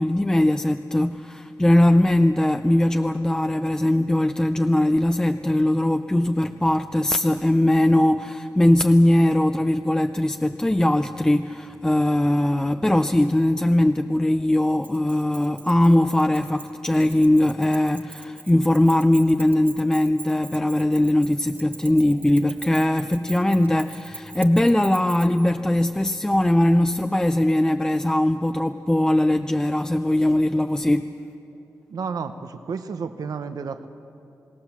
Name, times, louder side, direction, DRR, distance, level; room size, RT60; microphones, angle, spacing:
voice 1, 0.0-31.1, left 1 dB, 10° left, 8 dB, 0.4 m, -20 dB
Keys jangling, 14.8-25.5, right 3 dB, 30° right, 1.2 m, -42 dB
voice 2, 31.9-33.9, right 5 dB, 90° right, 9 dB, 0.8 m, -31 dB
26.5 x 18.5 x 7.2 m, 2.7 s
wide cardioid pair, 145°, 6 cm